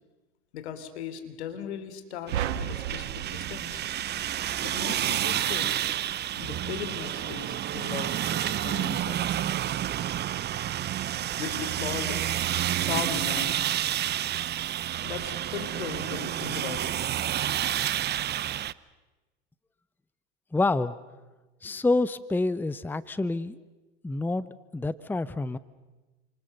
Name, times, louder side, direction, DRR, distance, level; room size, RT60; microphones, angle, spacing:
voice 1, 0.5-3.8 4.6-5.7 6.4-9.2 11.4-12.2 12.9-13.6 15.0-16.9, left 8 dB, 75° left, 10 dB, 3.4 m, -37 dB
sound 1, 2.3-18.7, right 11 dB, 30° right, 0.8 m, -30 dB
sound 2, 2.3-4.7, right 10 dB, 80° right, 1.3 m, -34 dB
voice 2, 20.5-21.0 21.6-23.6 24.0-25.6, left 2 dB, 5° left, 17 dB, 0.8 m, -27 dB
29.0 x 27.0 x 6.7 m, 1.2 s
hypercardioid pair, 90°, 33 cm